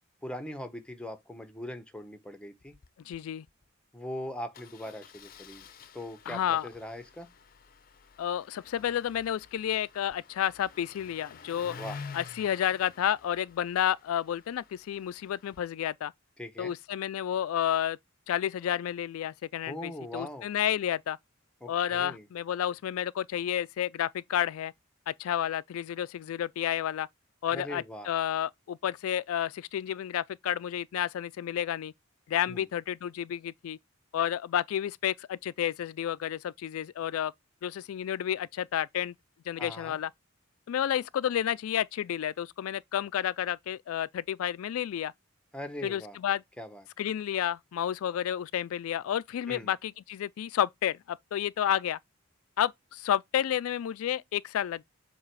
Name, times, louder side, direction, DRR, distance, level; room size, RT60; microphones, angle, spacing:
voice 1, 0.2-2.7 3.9-5.6 5.9-7.3 11.8-12.0 16.4-16.7 19.7-20.5 21.6-22.3 27.5-28.1 32.5-32.7 39.6-40.0 45.5-46.2 46.6-46.9 49.5-49.7, left 1 dB, 5° left, 0.8 m, -40 dB
Engine starting, 2.6-2.9 3.1-3.2 3.5-3.6 4.5-15.6, left 5 dB, 45° left, 0.6 m, -50 dB
voice 2, 3.1-3.4 6.3-6.7 8.2-11.8 12.1-16.1 16.6-18.0 18.3-21.2 21.7-24.7 25.1-27.1 27.4-31.9 32.3-33.8 34.1-37.3 37.6-39.1 39.5-40.1 40.7-45.1 45.8-46.4 47.0-52.0 52.6-54.8, left 10 dB, 90° left, 0.3 m, -31 dB
7.3 x 2.9 x 4.6 m
head